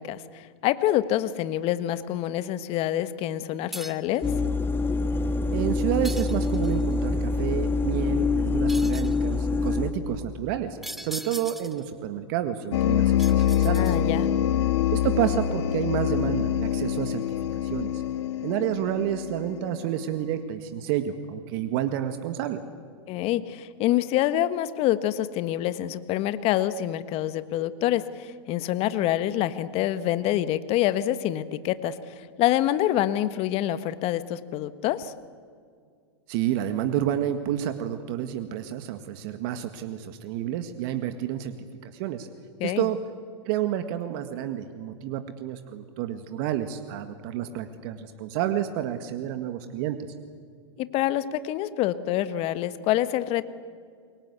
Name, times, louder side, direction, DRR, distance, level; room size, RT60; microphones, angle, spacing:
voice 1, 0.0-4.3 13.8-14.3 23.1-35.1 42.6-42.9 50.8-53.5, left 13 dB, 40° left, 13 dB, 1.5 m, -26 dB
sound 1, 3.7-4.2 6.0-6.8 8.7-9.2 10.8-11.9 13.2-14.2, equal, ahead, 1.2 m, -39 dB
sound 2, 4.2-9.9, left 3 dB, 15° left, 2.2 m, -25 dB
voice 2, 5.5-13.9 14.9-17.2 17.6-18.0 18.4-22.6 36.3-41.5 41.8-42.3 42.6-43.0 43.5-50.0, right 11 dB, 50° right, 8 dB, 1.8 m, -29 dB
sound 3, 12.7-20.1, left 10 dB, 65° left, 1.5 m, -25 dB
29.0 x 23.0 x 8.3 m, 2.1 s
hypercardioid pair, 110°, 15 cm